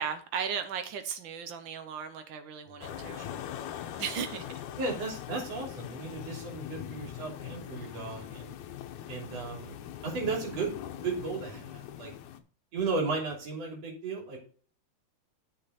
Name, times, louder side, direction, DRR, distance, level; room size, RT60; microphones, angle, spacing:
voice 1, 0.0-3.2 4.0-4.5, right 7 dB, 85° right, 1.0 m, -36 dB
sound 1, 2.8-12.4, left 10 dB, 75° left, 2.1 m, -42 dB
voice 2, 2.8-3.4 4.8-8.5 9.1-9.8 10.0-10.8 11.0-12.1 12.7-14.4, right 4 dB, 55° right, 4.2 m, -35 dB
9.4 x 6.8 x 4.1 m
omnidirectional pair, 3.4 m